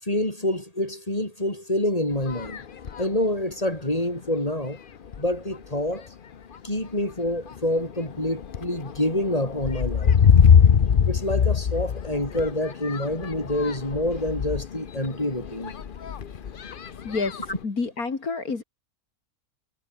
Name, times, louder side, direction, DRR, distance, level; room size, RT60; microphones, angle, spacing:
voice 1, 0.0-2.6 3.0-4.8 5.2-6.1 6.6-10.2 11.1-15.7 17.5-17.6, left 1 dB, 25° left, 7.2 m, -27 dB
sound 1, 2.1-3.2 3.9-4.0 4.5-4.7 5.1-5.7 6.3-6.6 7.0-17.6, left 7 dB, 45° left, 0.9 m, -24 dB
voice 2, 17.0-18.6, left 4 dB, 75° left, 3.3 m, -29 dB
omnidirectional pair, 1.6 m